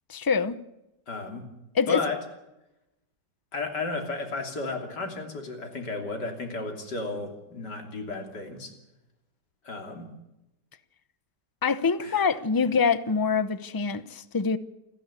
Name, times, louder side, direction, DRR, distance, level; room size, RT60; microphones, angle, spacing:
voice 1, 0.1-0.6 1.7-2.0 11.6-14.6, left 5 dB, 30° left, 0.3 m, -25 dB
voice 2, 1.1-1.5 1.9-2.2 3.5-8.7 9.6-10.1 12.0-12.3, left 3 dB, 80° left, 3.7 m, -33 dB
28.5 x 11.0 x 9.8 m
omnidirectional pair, 1.8 m